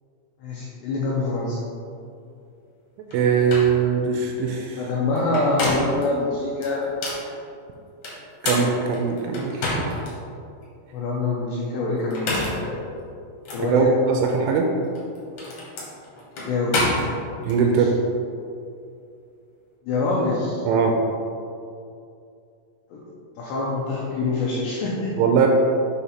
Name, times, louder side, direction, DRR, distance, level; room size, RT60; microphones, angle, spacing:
voice 1, 0.4-1.6 4.8-6.9 10.9-12.9 13.5-13.9 16.5-16.8 17.8-17.9 19.9-20.7 22.9-23.0 23.4-25.1, left 3 dB, 85° left, -6 dB, 2.4 m, -25 dB
sound 1, 3.1-3.2 3.5-3.7 5.2-6.0 6.6-7.2 8.0-10.1 10.6-10.7 12.0-12.7 13.4-13.6 14.8-17.6, left 2 dB, 70° left, 1.7 m, -28 dB
voice 2, 3.1-4.8 8.4-9.9 13.6-14.7 17.5-17.9 20.7-21.0 25.2-25.5, right 5 dB, 85° right, 2 dB, 2.8 m, -21 dB
8.2 x 2.9 x 5.7 m, 2.5 s
omnidirectional pair, 5.8 m